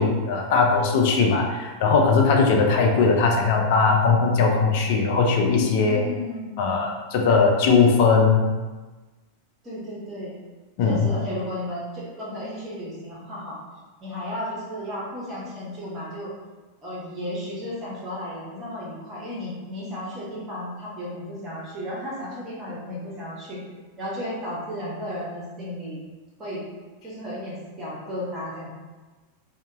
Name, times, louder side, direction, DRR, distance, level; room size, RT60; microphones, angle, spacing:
voice 1, 0.0-6.0 6.6-8.5 10.8-11.1, left 4 dB, 50° left, 1 dB, 0.4 m, -19 dB
voice 2, 5.8-6.8 9.6-10.3 10.8-13.6 14.0-16.3 16.8-23.6 24.0-26.0 26.4-26.6 27.0-28.7, left 1 dB, 20° right, -6 dB, 1.1 m, -34 dB
2.6 x 2.3 x 2.9 m, 1.3 s
figure-of-eight pair, 90°, 0 cm